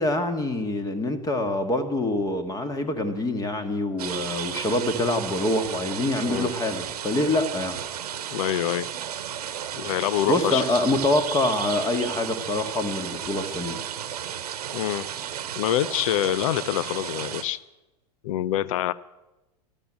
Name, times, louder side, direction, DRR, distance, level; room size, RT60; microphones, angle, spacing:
voice 1, 0.0-7.8 10.3-13.8, left 2 dB, 15° left, 8 dB, 1.9 m, -25 dB
sound 1, 4.0-17.4, right 9 dB, 65° right, 1.1 m, -34 dB
voice 2, 8.3-8.9 9.8-10.6 14.7-15.1 15.6-17.6 18.2-18.9, left 12 dB, 55° left, 19 dB, 0.7 m, -26 dB
13.0 x 12.5 x 8.8 m, 1.0 s
figure-of-eight pair, 90°, 21 cm